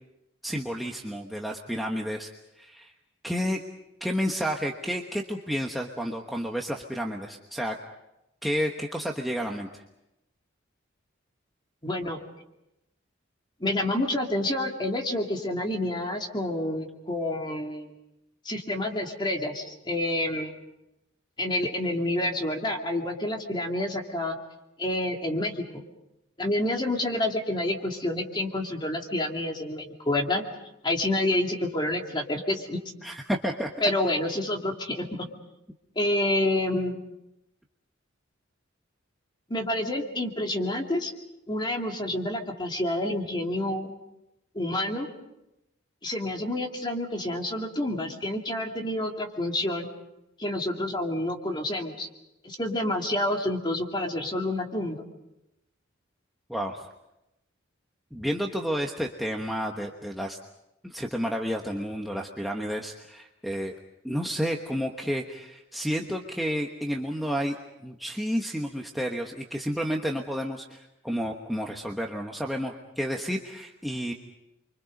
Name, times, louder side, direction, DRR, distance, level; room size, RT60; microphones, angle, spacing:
voice 1, 0.4-2.3 2.6-2.9 3.2-3.6 4.0-7.7 8.4-9.8 33.0-33.7 56.5-56.9 58.1-60.4 60.8-63.8 64.0-67.6 67.8-74.1, equal, ahead, 0 dB, 1.2 m, -31 dB
voice 2, 11.8-12.2 13.6-17.9 18.4-20.5 21.4-24.3 24.8-25.8 26.4-30.4 30.8-32.8 33.8-35.3 36.0-37.0 39.5-41.1 41.5-43.9 44.5-45.1 46.0-49.9 50.4-52.1 52.4-55.0, left 1 dB, 25° left, 2 dB, 2.7 m, -28 dB
29.5 x 24.0 x 5.3 m, 0.90 s
head